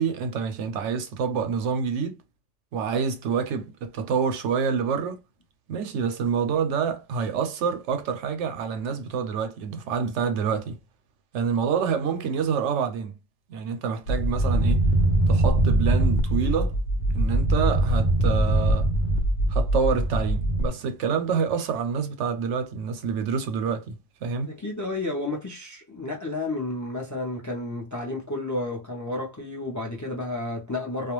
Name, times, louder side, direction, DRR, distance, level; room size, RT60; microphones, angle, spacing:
voice 1, 0.0-2.2 2.7-5.2 5.7-10.8 11.3-13.1 13.5-14.8 15.3-16.7 17.1-18.9 19.5-24.5, right 6 dB, 90° right, 0.9 m, -27 dB
sound 1, 14.1-20.7, right 1 dB, 85° left, 1.0 m, -22 dB
voice 2, 24.5-31.1, left 2 dB, 25° left, 0.4 m, -31 dB
2.4 x 2.2 x 3.0 m
omnidirectional pair, 1.2 m